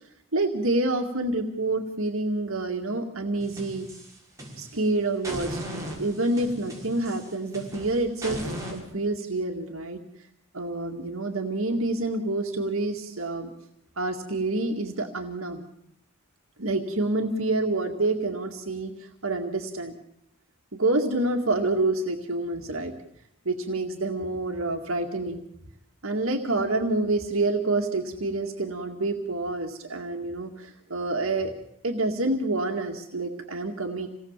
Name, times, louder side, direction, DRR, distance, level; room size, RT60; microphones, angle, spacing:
voice 1, 0.3-3.9 4.6-5.6 6.0-8.4 8.7-10.0 10.5-13.5 14.0-15.7 16.6-18.9 19.2-19.9 20.7-22.9 23.5-25.4 26.0-31.5 31.8-34.1, right 2 dB, 75° right, 3 dB, 2.1 m, -27 dB
sound 1, 3.4-4.8 5.2-8.8, equal, 15° right, 6.1 m, -37 dB
27.5 x 18.5 x 7.4 m, 0.74 s
head